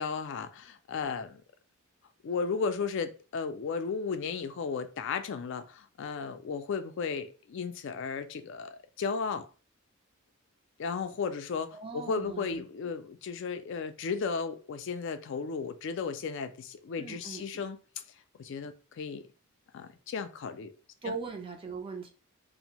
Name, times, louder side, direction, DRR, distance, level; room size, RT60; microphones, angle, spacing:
voice 1, 0.0-1.4 2.2-9.5 10.8-17.8 18.4-19.2 19.7-20.7 21.1-21.2, left 5 dB, 55° left, 0.3 m, -34 dB
voice 2, 11.7-12.6 17.0-17.4 21.0-22.1, right 4 dB, 25° right, 0.4 m, -39 dB
2.6 x 2.0 x 2.8 m
head